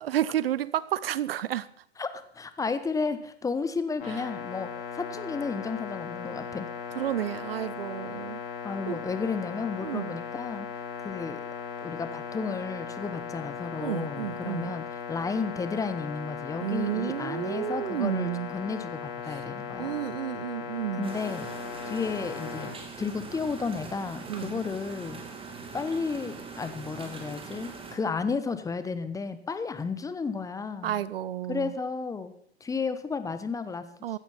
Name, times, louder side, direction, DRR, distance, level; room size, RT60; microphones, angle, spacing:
voice 1, 0.1-1.7 6.9-8.4 8.9-9.0 9.8-10.1 13.8-14.7 16.6-18.5 19.8-21.1 24.3-24.5 30.8-31.7 34.0-34.2, right 12 dB, 60° right, 0.7 m, -31 dB
voice 2, 2.0-6.7 8.6-10.7 11.0-11.4 11.8-20.0 20.9-21.5 21.8-25.2 25.7-30.9 31.5-32.3 32.6-34.2, left 4 dB, 10° left, 1.0 m, -33 dB
sound 1, 4.0-22.7, left 7 dB, 50° left, 4.1 m, -38 dB
sound 2, 21.0-28.0, right 4 dB, 15° right, 2.7 m, -42 dB
16.0 x 13.0 x 5.7 m
figure-of-eight pair, 105°, 34 cm